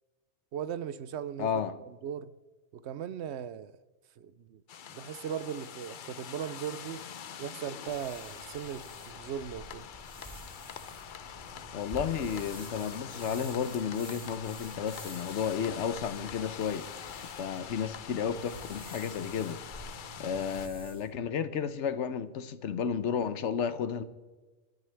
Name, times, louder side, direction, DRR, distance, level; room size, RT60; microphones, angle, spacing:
voice 1, 0.5-2.3 2.7-3.7 4.2-4.6 4.9-7.1 7.4-9.9, right 8 dB, 75° right, 0.9 m, -38 dB
voice 2, 1.4-1.8 11.7-16.9 17.4-19.6 20.2-24.0, left 7 dB, 85° left, 1.1 m, -32 dB
sound 1, 4.7-20.7, left 8 dB, 55° left, 0.7 m, -44 dB
sound 2, 7.8-21.1, right 1 dB, 5° right, 2.2 m, -49 dB
28.5 x 10.5 x 3.4 m
omnidirectional pair, 1.2 m